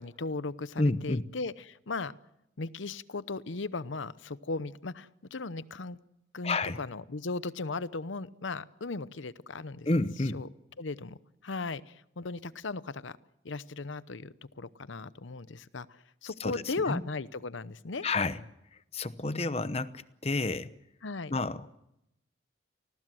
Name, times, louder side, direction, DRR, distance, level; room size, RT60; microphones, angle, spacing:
voice 1, 0.0-2.1 2.6-6.0 6.3-9.9 10.3-10.5 10.8-13.2 13.4-18.0 19.2-19.5 21.0-21.3, left 3 dB, 85° left, 17 dB, 0.9 m, -37 dB
voice 2, 0.8-1.2 6.4-6.8 9.9-10.4 16.4-16.5 16.9-17.0 18.0-18.4 18.9-20.7 21.3-21.7, left 2 dB, 30° left, 14 dB, 0.9 m, -29 dB
29.5 x 20.0 x 7.7 m, 0.85 s
head